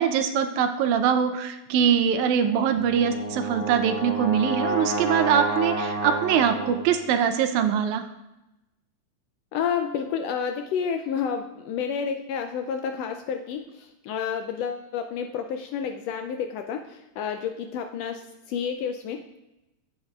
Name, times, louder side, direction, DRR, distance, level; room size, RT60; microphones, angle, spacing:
voice 1, 0.0-8.0, right 8 dB, 85° right, 8 dB, 2.1 m, -23 dB
Brass instrument, 2.7-7.0, right 2 dB, 35° right, 1.6 m, -30 dB
voice 2, 9.5-18.2 18.5-19.4, left 7 dB, 80° left, 6 dB, 1.5 m, -30 dB
9.0 x 8.8 x 2.3 m, 0.93 s
omnidirectional pair, 3.3 m